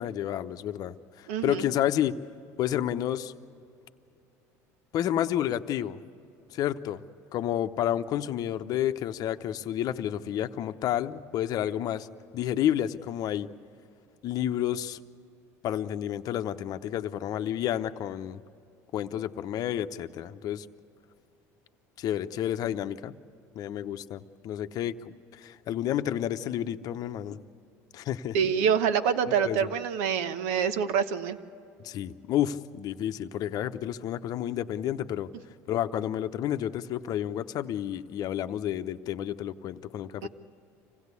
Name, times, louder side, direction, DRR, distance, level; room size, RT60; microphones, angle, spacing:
voice 1, 0.0-2.2 2.6-3.3 4.9-6.0 6.5-7.0 7.3-12.1 12.3-13.5 14.2-15.0 15.6-18.4 18.9-20.7 22.0-23.2 23.5-27.4 27.9-28.5 29.4-29.6 31.8-35.3 35.7-40.3, left 11 dB, 55° left, 10 dB, 0.8 m, -30 dB
voice 2, 1.3-1.7 28.3-31.4 40.2-40.3, right 7 dB, 80° right, 11 dB, 1.1 m, -26 dB
26.0 x 16.5 x 8.3 m, 2.7 s
supercardioid pair, 100°, 8 cm